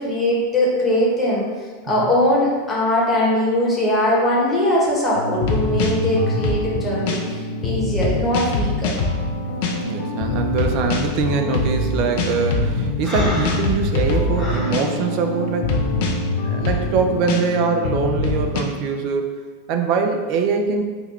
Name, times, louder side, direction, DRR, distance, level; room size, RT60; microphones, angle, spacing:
voice 1, 0.0-1.5 1.8-8.9, left 1 dB, 15° left, -5 dB, 1.0 m, -20 dB
sound 1, 5.1-18.6, left 2 dB, 50° left, 0.4 m, -23 dB
voice 2, 9.8-15.8 16.4-19.3 19.7-20.8, right 5 dB, 45° right, 4 dB, 0.3 m, -23 dB
Breathing, 13.0-14.8, left 1 dB, 20° right, 1.2 m, -26 dB
3.4 x 2.2 x 3.2 m, 1.4 s
figure-of-eight pair, 85°, 0 cm